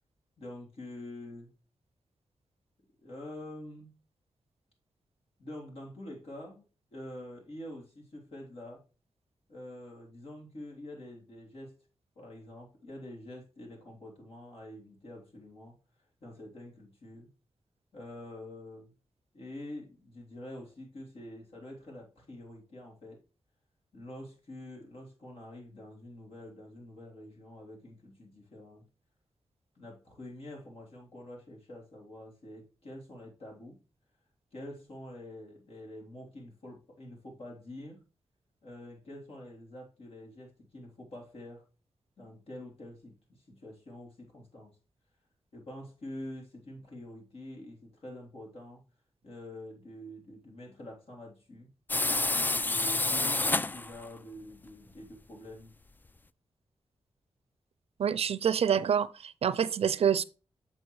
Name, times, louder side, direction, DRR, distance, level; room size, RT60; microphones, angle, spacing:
voice 1, 0.4-1.5 3.0-3.9 5.4-6.6 6.9-8.8 9.5-11.8 12.1-15.7 16.2-17.3 17.9-18.9 19.3-23.2 23.9-28.8 29.7-33.8 34.5-38.0 38.6-41.7 42.2-44.7 45.5-48.8 49.2-51.7 52.3-55.7, left 1 dB, 70° left, 3.4 m, -46 dB
sound 1, 51.9-54.1, left 2 dB, 20° left, 0.3 m, -28 dB
voice 2, 58.0-60.2, right 8 dB, 75° right, 0.5 m, -27 dB
7.9 x 5.9 x 3.1 m
wide cardioid pair, 85°, 10 cm